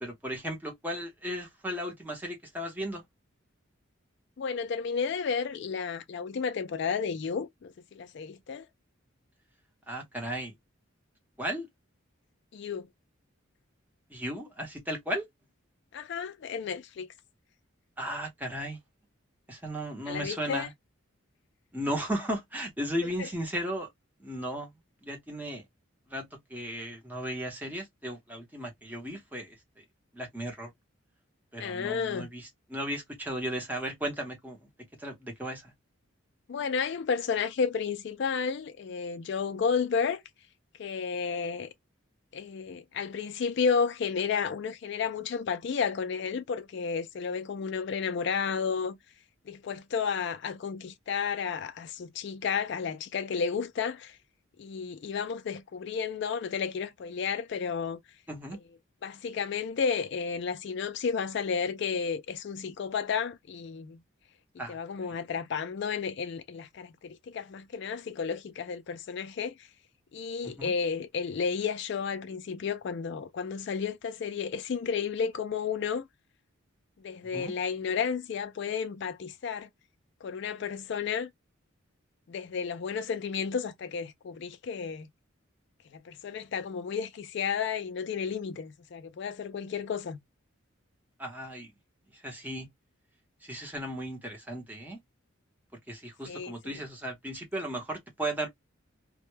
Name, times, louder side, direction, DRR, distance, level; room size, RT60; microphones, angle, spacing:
voice 1, 0.0-3.0 9.9-10.5 11.4-11.7 14.1-15.3 18.0-18.8 19.5-20.7 21.7-23.9 24.2-24.7 25.0-25.6 26.1-29.8 30.1-30.7 31.5-34.7 35.0-35.7 58.3-58.6 64.6-65.1 70.4-70.7 77.3-77.5 91.2-91.7 92.1-92.7 93.4-95.0 95.9-98.5, equal, 10° right, 0.7 m, -35 dB
voice 2, 4.4-8.7 12.5-12.9 15.9-17.1 20.1-20.7 23.2-23.3 31.6-32.3 36.5-40.2 40.8-41.7 42.3-49.0 49.5-54.2 54.6-58.0 59.0-64.0 64.7-69.7 70.1-76.1 77.0-79.7 80.2-81.3 82.3-85.1 85.9-90.2 96.3-96.8, left 6 dB, 55° left, 0.3 m, -32 dB
2.2 x 2.1 x 3.0 m
head